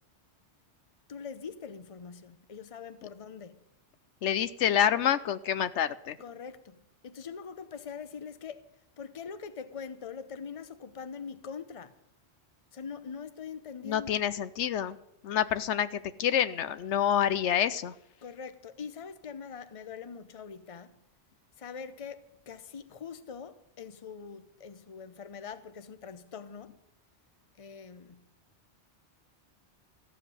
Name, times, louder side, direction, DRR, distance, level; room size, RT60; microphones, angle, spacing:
voice 1, 1.1-3.6 6.2-6.8 7.0-8.7 9.0-12.0 12.7-14.2 18.2-20.9 21.6-26.8 27.6-28.3, left 6 dB, 35° left, 0.8 m, -43 dB
voice 2, 4.2-6.2 13.8-15.0 15.2-17.9, left 9 dB, 80° left, 1.0 m, -27 dB
14.5 x 7.3 x 9.7 m
omnidirectional pair, 1.2 m